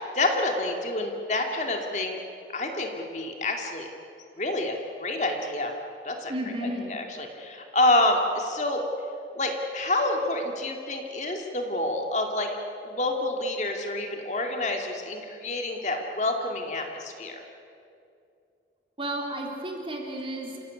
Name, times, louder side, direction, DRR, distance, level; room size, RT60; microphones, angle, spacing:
voice 1, 0.1-2.2 2.5-3.9 4.4-5.7 6.0-6.3 6.6-8.8 9.4-12.5 12.8-17.4, left 2 dB, 40° left, 3 dB, 2.5 m, -28 dB
voice 2, 6.3-7.0 19.0-20.6, right 1 dB, 30° right, 1 dB, 3.7 m, -32 dB
29.0 x 16.0 x 10.0 m, 2.5 s
head